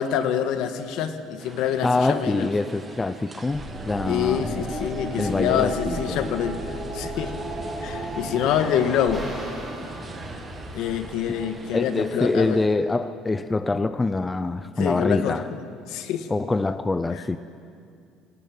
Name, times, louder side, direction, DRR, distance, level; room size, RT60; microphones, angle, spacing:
voice 1, 0.0-2.5 4.0-6.6 6.9-7.3 7.8-9.2 10.7-12.6 14.8-15.4 15.9-16.3, left 9 dB, 65° left, 8 dB, 1.6 m, -26 dB
sound 1, 1.4-12.7, right 3 dB, 20° right, 1.9 m, -43 dB
voice 2, 1.8-4.6 5.2-6.3 11.3-11.4 11.7-15.4 16.3-17.4, left 3 dB, 10° left, 12 dB, 0.5 m, -25 dB
ftl jump longer, 3.5-11.6, right 1 dB, 5° right, 7.0 m, -34 dB
19.5 x 18.5 x 9.0 m, 2.4 s
cardioid pair, 150°, 0 cm